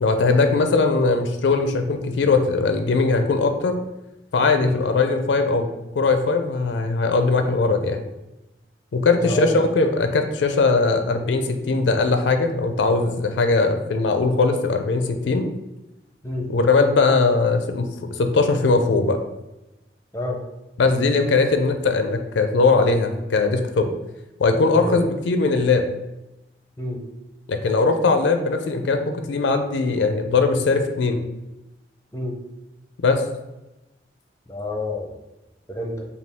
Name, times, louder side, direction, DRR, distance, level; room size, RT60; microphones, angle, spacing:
voice 1, 0.0-3.8 4.3-5.7 6.0-8.0 8.9-15.5 16.5-19.2 20.8-23.9 24.4-25.8 27.5-31.3 33.0-33.2, left 3 dB, 80° left, 7 dB, 0.4 m, -20 dB
voice 2, 9.2-9.5 16.2-16.5 20.1-20.4 24.7-25.0 26.8-27.0 32.1-32.4 34.5-35.1 35.7-36.1, left 1 dB, 15° left, 1 dB, 0.5 m, -28 dB
5.2 x 2.3 x 3.4 m, 0.98 s
head